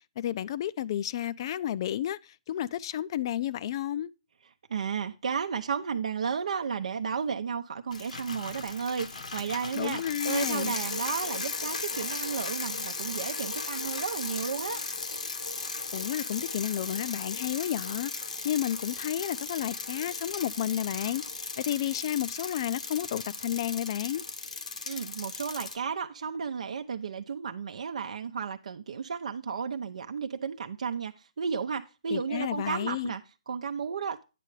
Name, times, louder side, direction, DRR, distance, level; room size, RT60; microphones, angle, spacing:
voice 1, 0.2-2.2 2.5-4.1 9.7-10.7 15.9-18.1 18.4-21.2 21.6-24.2 32.1-33.1, left 11 dB, 40° left, 0.4 m, -31 dB
voice 2, 4.7-14.8 24.9-34.2, right 6 dB, 70° right, 0.6 m, -33 dB
Bicycle, 7.9-25.8, left 4 dB, 80° left, 1.2 m, -36 dB
9.3 x 6.7 x 3.1 m
hypercardioid pair, 150°, 4 cm